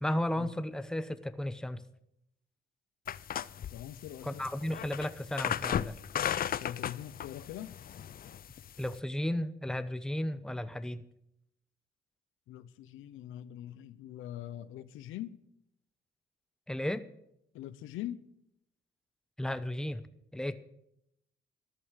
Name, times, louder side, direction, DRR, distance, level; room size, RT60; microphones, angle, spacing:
voice 1, 0.0-1.8 4.2-5.9 8.8-11.0 16.7-17.0 19.4-20.0 20.3-20.6, left 1 dB, 5° left, 0.9 m, -34 dB
sound 1, 3.1-9.0, left 10 dB, 45° left, 0.5 m, -36 dB
voice 2, 3.7-4.4 6.6-7.8 12.5-15.4 17.5-18.2, left 12 dB, 90° left, 0.8 m, -42 dB
14.0 x 11.0 x 6.4 m
cardioid pair, 90°, 20 cm